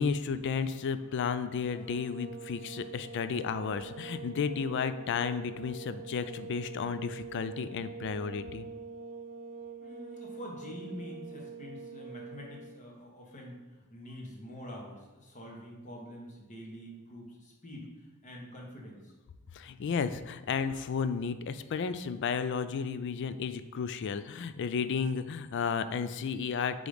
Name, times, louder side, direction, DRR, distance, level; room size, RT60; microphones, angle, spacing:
voice 1, 0.0-8.7 19.5-26.9, left 6 dB, 55° left, 12 dB, 0.3 m, -33 dB
sound 1, 1.7-12.8, right 4 dB, 40° right, 0.6 m, -45 dB
voice 2, 9.8-13.6 13.9-19.1, equal, 35° left, -1 dB, 1.3 m, -46 dB
4.9 x 3.9 x 5.0 m, 1.2 s
head